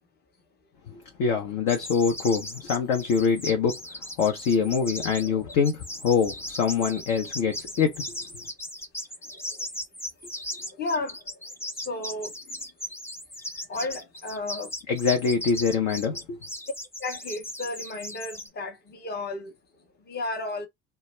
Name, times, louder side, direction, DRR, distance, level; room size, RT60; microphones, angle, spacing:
voice 1, 0.9-3.8 4.2-8.0 14.9-16.4, left 6 dB, 50° left, 0.9 m, -24 dB
sound 1, 1.7-18.5, left 1 dB, 5° left, 0.5 m, -37 dB
voice 2, 5.2-5.6 9.3-9.6 10.7-11.2 11.7-12.6 13.7-14.7 17.0-19.5 20.1-20.7, left 2 dB, 20° left, 0.9 m, -33 dB
2.2 x 2.2 x 3.2 m
figure-of-eight pair, 70°, 44 cm